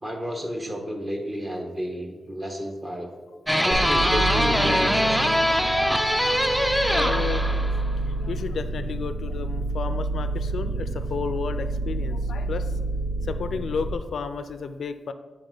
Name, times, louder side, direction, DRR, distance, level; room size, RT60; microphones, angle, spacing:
voice 1, 0.0-3.1 3.6-5.4, equal, 25° right, 3 dB, 1.3 m, -31 dB
sound 1, 3.5-8.0, equal, 5° right, 0.5 m, -22 dB
sound 2, 3.7-13.9, right 2 dB, 80° right, 0.7 m, -29 dB
voice 2, 6.9-7.4 8.0-12.8 13.2-15.1, left 5 dB, 75° left, 10 dB, 0.4 m, -32 dB
9.0 x 4.5 x 3.8 m, 1.4 s
cardioid pair, 90°, 0 cm